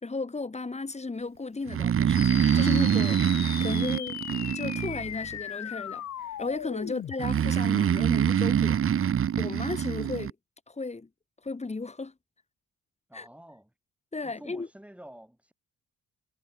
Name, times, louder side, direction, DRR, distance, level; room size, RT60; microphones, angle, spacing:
voice 1, 0.0-3.2 3.6-4.2 4.5-6.0 6.4-8.8 9.4-10.4 10.7-11.1 11.4-12.1 13.1-13.3 14.1-14.7, left 3 dB, 20° left, 3.6 m, -34 dB
Breathing, 1.7-5.4 7.2-10.3, right 9 dB, 45° right, 1.1 m, -25 dB
sound 1, 2.1-7.2, left 11 dB, 60° left, 1.6 m, -37 dB
voice 2, 13.1-13.7 14.2-15.5, right 1 dB, 5° right, 7.8 m, -49 dB
cardioid pair, 90°, 30 cm